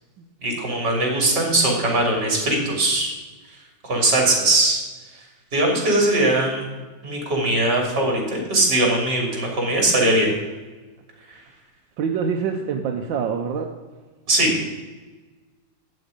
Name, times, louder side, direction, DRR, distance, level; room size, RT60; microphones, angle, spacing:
voice 1, 0.4-3.1 3.8-4.8 5.5-6.7 7.0-10.3 14.3-14.5, right 2 dB, 65° right, 0 dB, 3.7 m, -20 dB
voice 2, 12.0-13.7, right 6 dB, 90° right, 3 dB, 1.6 m, -25 dB
12.5 x 8.5 x 5.2 m, 1.3 s
omnidirectional pair, 2.0 m